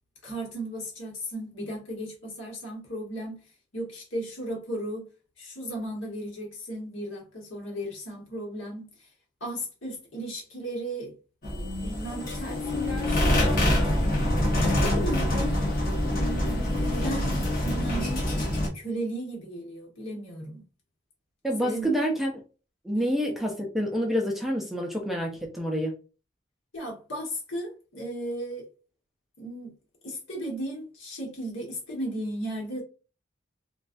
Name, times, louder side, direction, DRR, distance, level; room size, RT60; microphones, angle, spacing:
voice 1, 0.2-3.4 3.7-5.1 5.4-9.1 9.4-11.1 11.8-14.1 14.7-15.7 16.1-18.2 18.7-20.6 21.6-21.9 26.7-28.6 29.4-29.8 30.0-32.8, right 1 dB, 80° left, 1.3 m, -35 dB
sound 1, 11.4-18.7, left 1 dB, 45° left, 0.9 m, -25 dB
voice 2, 21.4-22.3 22.8-25.9, equal, ahead, 0.4 m, -27 dB
3.1 x 2.3 x 2.5 m
head